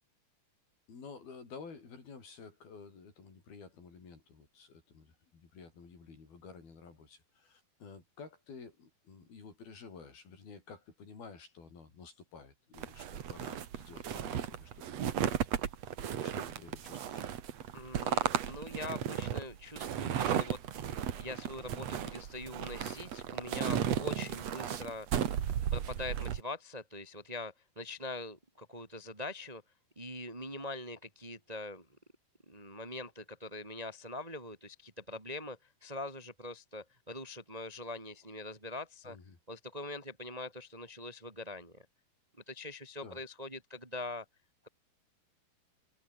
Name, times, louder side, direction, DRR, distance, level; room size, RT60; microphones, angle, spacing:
voice 1, 0.9-17.3 39.0-39.4 43.0-43.2, left 5 dB, 70° left, 8.1 m, -52 dB
sound 1, 12.8-26.4, right 9 dB, 50° right, 2.4 m, -35 dB
voice 2, 17.7-25.1 25.7-29.6 29.9-31.9 32.5-39.2 39.5-41.8 42.5-44.2, left 2 dB, 15° right, 1.7 m, -43 dB
omnidirectional pair, 4.4 m